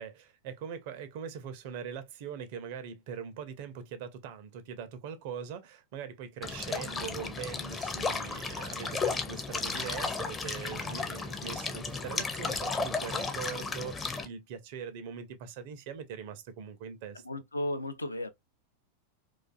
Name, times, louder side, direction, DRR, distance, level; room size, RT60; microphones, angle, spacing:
voice 1, 0.0-17.2, right 7 dB, 50° right, 0.4 m, -41 dB
sound 1, 6.4-14.2, left 4 dB, 15° left, 0.4 m, -34 dB
voice 2, 17.1-18.3, left 1 dB, 80° left, 0.3 m, -34 dB
2.4 x 2.3 x 2.2 m
figure-of-eight pair, 90°, 0 cm